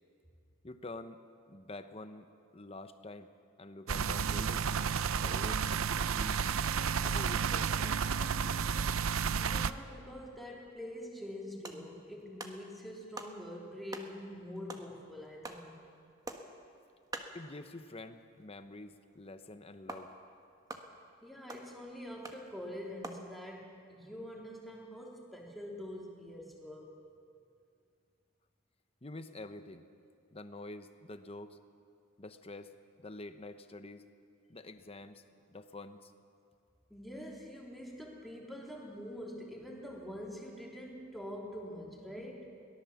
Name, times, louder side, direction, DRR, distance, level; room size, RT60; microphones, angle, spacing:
voice 1, 0.6-1.2 1.5-3.3 3.6-4.7 5.2-5.6 5.9-6.4 7.0-8.6 17.3-20.1 29.0-29.8 30.3-31.6 32.2-32.7 33.0-34.1 34.5-36.1 42.2-42.3, left 2 dB, 30° left, 9 dB, 0.9 m, -47 dB
sound 1, 3.9-9.7, right 6 dB, 90° right, 0.6 m, -31 dB
voice 2, 9.4-15.8 21.2-26.9 36.9-42.5, equal, ahead, -2 dB, 3.1 m, -45 dB
sound 2, 11.4-18.4 18.7-18.8 19.1-19.2 19.9-23.3, right 2 dB, 20° right, 1.2 m, -48 dB
22.5 x 17.5 x 7.2 m, 2.4 s
head